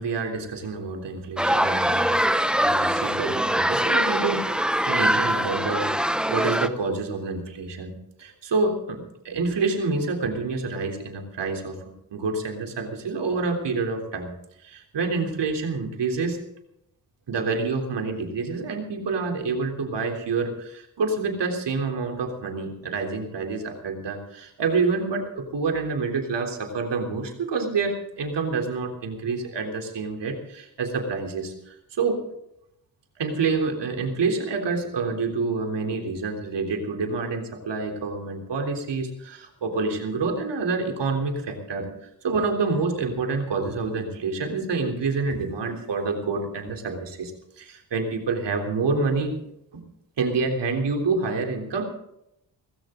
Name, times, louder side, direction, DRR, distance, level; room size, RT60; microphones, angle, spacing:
voice 1, 0.0-2.2 2.6-5.9 6.3-11.8 12.1-14.4 14.6-16.4 17.3-32.2 33.2-41.9 42.2-47.3 47.6-49.3 49.7-49.8 50.2-51.9, right 4 dB, 80° right, 4 dB, 3.6 m, -27 dB
sound 1, 1.4-6.7, equal, ahead, 0.8 m, -23 dB
19.5 x 16.0 x 3.8 m, 0.79 s
wide cardioid pair, 105°, 42 cm